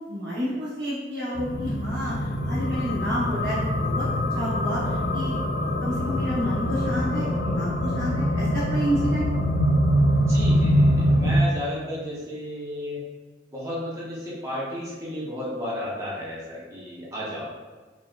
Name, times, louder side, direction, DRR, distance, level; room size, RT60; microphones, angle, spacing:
voice 1, 0.1-4.0 4.3-5.3 5.6-9.3, equal, 80° right, -8 dB, 0.9 m, -30 dB
sound 1, 1.3-11.4, equal, 65° left, 0.4 m, -24 dB
voice 2, 10.0-13.0 13.5-17.5, left 1 dB, 20° right, -6 dB, 0.8 m, -33 dB
4.0 x 3.6 x 2.3 m, 1.3 s
head